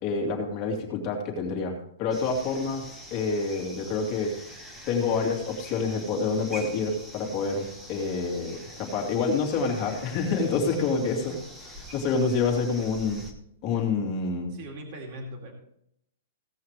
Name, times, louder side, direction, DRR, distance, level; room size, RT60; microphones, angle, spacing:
voice 1, 0.0-4.3 4.9-11.3 11.9-13.2 13.6-14.5, left 4 dB, 25° left, 1 dB, 2.4 m, -27 dB
sound 1, 2.1-13.3, equal, 5° right, 1.2 m, -45 dB
voice 2, 14.5-15.5, right 1 dB, 30° right, 1 dB, 2.4 m, -40 dB
16.5 x 8.4 x 3.2 m, 0.71 s
hypercardioid pair, 180°, 0 cm